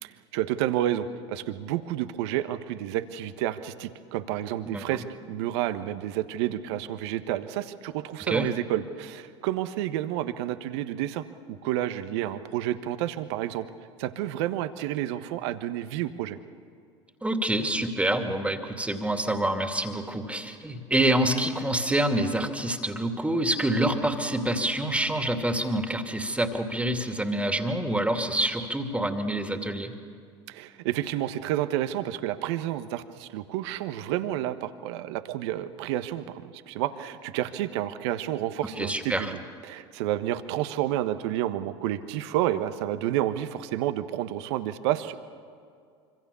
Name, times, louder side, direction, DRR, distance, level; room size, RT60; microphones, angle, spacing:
voice 1, 0.0-13.7 14.0-16.4 30.5-39.4 39.6-45.2, right 13 dB, 65° right, 11 dB, 1.3 m, -30 dB
voice 2, 17.2-29.9 38.8-39.3, right 1 dB, 10° right, 5 dB, 2.5 m, -27 dB
26.0 x 25.0 x 7.0 m, 2.3 s
hypercardioid pair, 75°, 15 cm